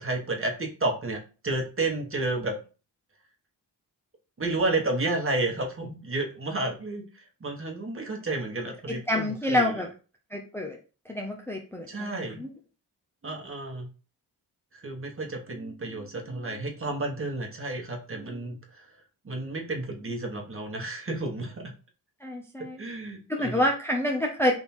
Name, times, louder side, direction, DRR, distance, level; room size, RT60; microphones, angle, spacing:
voice 1, 0.0-2.6 4.4-9.8 11.9-12.4 13.2-13.9 14.7-18.8 19.2-21.7 22.8-23.6, right 2 dB, 30° right, 0 dB, 1.3 m, -31 dB
voice 2, 8.9-9.9 10.3-10.8 11.1-12.5 22.2-22.8 23.3-24.6, left 1 dB, 5° left, 0 dB, 0.7 m, -28 dB
3.6 x 2.8 x 4.4 m, 0.35 s
cardioid pair, 80°, 43 cm